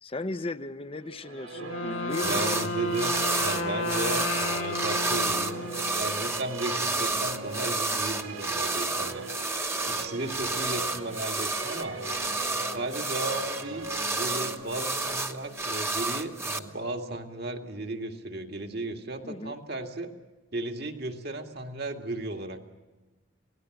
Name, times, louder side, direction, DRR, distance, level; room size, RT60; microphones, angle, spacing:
voice 1, 0.0-2.6 19.2-19.6, left 2 dB, 30° left, 12 dB, 0.7 m, -35 dB
sound 1, 1.0-17.1, right 2 dB, 80° right, 3.0 m, -41 dB
Wind instrument woodwind instrument, 1.5-6.4, left 2 dB, 80° left, 1.5 m, -33 dB
sound 2, 2.1-2.7 2.9-16.6, right 3 dB, 15° right, 1.1 m, -30 dB
voice 2, 2.2-3.2 3.4-5.6 5.9-9.3 9.8-12.0 12.6-20.1 20.5-22.6, right 2 dB, 55° right, 4 dB, 2.1 m, -35 dB
27.5 x 18.5 x 7.9 m, 1.2 s
head